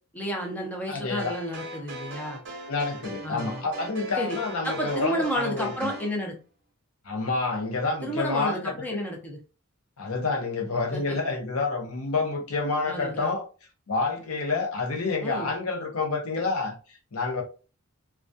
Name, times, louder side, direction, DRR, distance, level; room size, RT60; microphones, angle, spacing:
voice 1, 0.1-2.4 3.2-3.7 4.2-4.4 4.6-6.3 8.0-9.4 10.9-11.2 12.9-13.3 15.2-15.5, equal, 5° left, 0.5 m, -31 dB
voice 2, 0.9-1.3 2.7-5.9 7.0-9.0 10.0-13.4 13.9-17.4, left 3 dB, 75° left, 0.7 m, -28 dB
sound 1, 1.2-6.1, right 1 dB, 60° right, 0.7 m, -40 dB
2.2 x 2.2 x 2.5 m
head